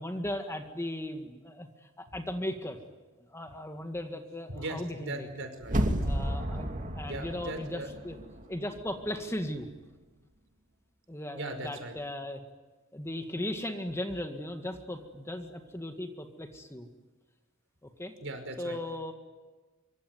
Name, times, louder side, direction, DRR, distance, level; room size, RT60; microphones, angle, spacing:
voice 1, 0.0-2.8 3.2-5.3 6.0-8.2 8.5-9.7 11.1-12.4 12.9-16.9 17.8-18.1 18.6-19.1, left 1 dB, 10° left, 6 dB, 1.8 m, -37 dB
voice 2, 4.5-5.8 7.1-7.9 11.3-11.9 18.2-18.8, right 2 dB, 65° right, 6 dB, 5.3 m, -38 dB
sound 1, 5.6-8.6 8.9-9.0, equal, 40° right, 2.6 m, -32 dB
25.5 x 24.5 x 9.6 m, 1.3 s
head